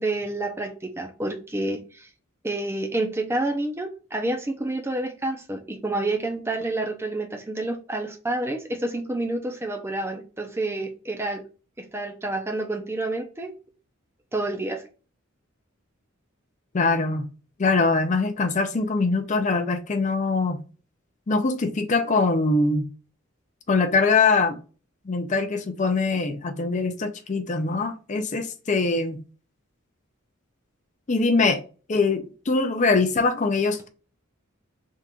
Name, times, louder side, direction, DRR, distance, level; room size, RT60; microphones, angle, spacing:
voice 1, 0.0-2.1 2.4-11.4 11.8-13.5 14.3-14.8, right 2 dB, 10° right, 0.5 m, -29 dB
voice 2, 16.7-17.3 17.6-20.6 21.3-22.9 23.7-24.6 25.1-29.2 31.1-31.6 31.9-33.9, left 3 dB, 35° left, 0.5 m, -23 dB
3.6 x 2.5 x 4.3 m
head